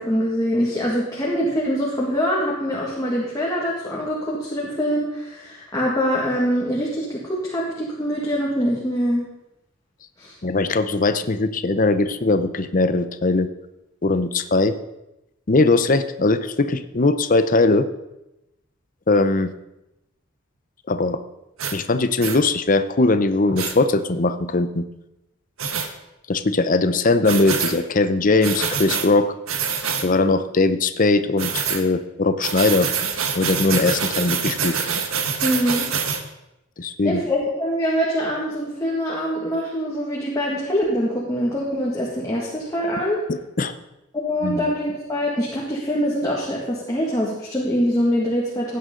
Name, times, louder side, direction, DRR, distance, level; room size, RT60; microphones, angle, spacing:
voice 1, 0.0-9.2 10.2-10.3 35.4-35.9 37.0-43.2 44.1-48.8, equal, 15° left, -5 dB, 1.9 m, -24 dB
voice 2, 10.4-13.5 14.0-14.7 15.5-17.9 19.1-19.5 20.9-21.2 21.7-24.8 26.3-29.3 30.0-32.9 33.3-34.8 36.8-37.2 43.3-43.7 44.4-44.7, left 3 dB, 40° left, 11 dB, 0.7 m, -20 dB
sound 1, 21.6-21.8 22.2-22.4 23.6-23.7 25.6-25.9 27.2-27.8 28.4-29.1 29.5-30.1 31.4-31.8 32.4-36.2, right 6 dB, 85° right, 1.3 m, -25 dB
16.0 x 9.5 x 3.8 m, 0.92 s
head